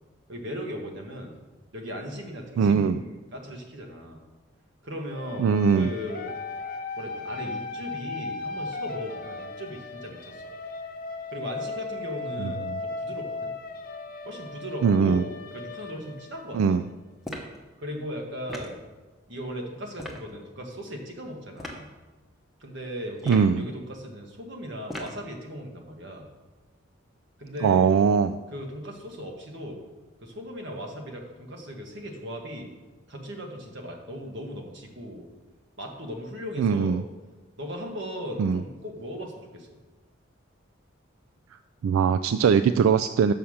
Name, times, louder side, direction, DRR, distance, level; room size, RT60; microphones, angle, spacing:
voice 1, 0.3-1.4 1.7-4.2 4.8-6.3 6.9-10.4 11.3-13.5 14.2-16.8 17.8-18.8 19.3-21.9 22.6-26.3 27.4-27.9 28.5-29.8 30.2-32.7 33.1-35.3 35.8-37.0 37.6-39.7, equal, 60° right, 2 dB, 1.5 m, -37 dB
voice 2, 2.6-3.0 5.4-5.9 12.4-12.8 14.8-15.2 16.5-16.9 23.3-23.7 27.6-28.4 36.6-37.0 38.4-38.6 41.8-43.3, right 6 dB, 90° right, 11 dB, 0.3 m, -21 dB
sound 1, 5.1-16.9, left 3 dB, 45° left, 0.6 m, -37 dB
sound 2, 17.2-17.6 18.5-18.8 20.0-20.2 21.6-21.8 23.2-23.6 24.9-25.2, left 1 dB, ahead, 0.9 m, -37 dB
7.1 x 5.7 x 6.4 m, 1.2 s
head